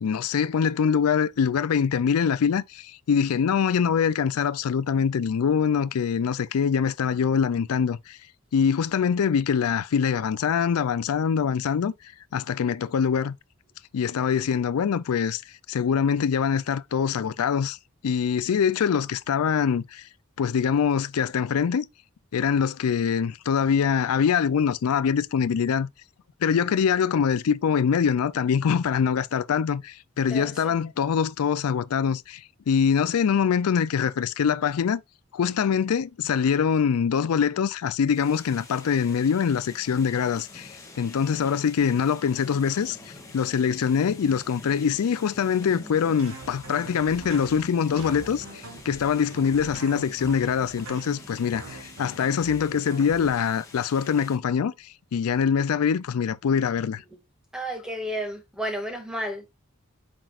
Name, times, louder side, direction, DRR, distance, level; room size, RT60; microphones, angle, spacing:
voice 1, 0.0-8.2 8.5-11.9 12.3-13.3 13.9-17.8 18.0-20.1 20.4-21.8 22.3-25.9 26.4-35.0 35.3-57.0, left 7 dB, 90° left, 0.4 m, -24 dB
voice 2, 30.3-30.7 52.7-52.8 57.5-59.6, equal, 5° right, 2.0 m, -32 dB
sound 1, 38.1-54.4, left 2 dB, 15° left, 2.1 m, -46 dB
sound 2, 46.2-53.3, right 2 dB, 70° right, 2.6 m, -43 dB
8.9 x 6.0 x 2.4 m
head